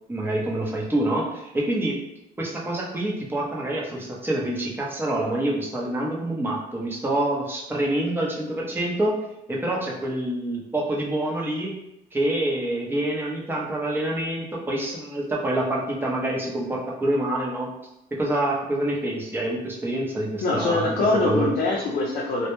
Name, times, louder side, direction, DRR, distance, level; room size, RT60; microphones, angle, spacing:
voice 1, 0.1-2.0 2.4-9.2 9.5-11.7 12.1-17.7 18.1-21.0 21.2-21.5, right 1 dB, 15° right, -3 dB, 0.6 m, -26 dB
voice 2, 20.4-22.5, left 2 dB, 55° left, -4 dB, 0.5 m, -23 dB
2.1 x 2.1 x 3.0 m, 0.86 s
cardioid pair, 110°, 17 cm